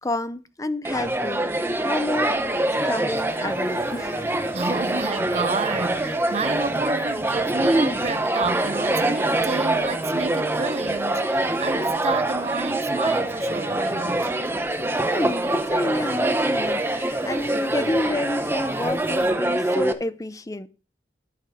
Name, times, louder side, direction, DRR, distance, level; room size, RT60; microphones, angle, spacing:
voice 1, 0.0-2.4 2.8-4.3 15.0-20.7, left 1 dB, 20° left, 0.6 m, -29 dB
sound 1, 0.8-19.9, right 1 dB, 15° right, 0.8 m, -24 dB
sound 2, 2.3-19.3, left 2 dB, 50° left, 2.0 m, -47 dB
voice 2, 4.5-14.3, right 4 dB, 35° right, 0.5 m, -30 dB
13.0 x 5.3 x 4.8 m
head